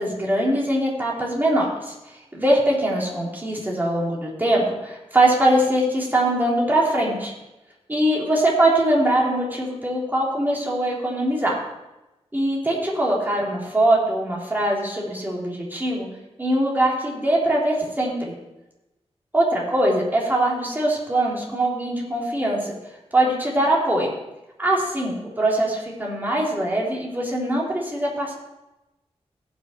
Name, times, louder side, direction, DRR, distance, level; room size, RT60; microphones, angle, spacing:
voice 1, 0.0-1.9 2.3-7.3 7.9-11.6 12.3-16.1 16.4-18.3 19.3-22.7 23.1-24.1 24.6-28.3, right 1 dB, 15° right, -4 dB, 3.3 m, -22 dB
16.5 x 6.3 x 4.4 m, 0.97 s
wide cardioid pair, 105°, 11 cm